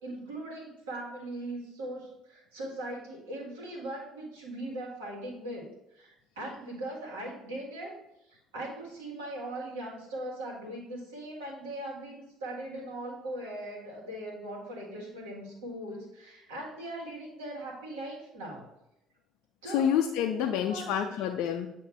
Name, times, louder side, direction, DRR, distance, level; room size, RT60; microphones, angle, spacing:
voice 1, 0.0-7.9 8.3-18.6 19.6-19.9 20.4-21.1, right 1 dB, 70° right, -2 dB, 1.7 m, -40 dB
voice 2, 19.6-21.7, left 9 dB, 60° left, 4 dB, 0.4 m, -28 dB
8.0 x 2.9 x 4.4 m, 0.87 s
figure-of-eight pair, 55°, 0 cm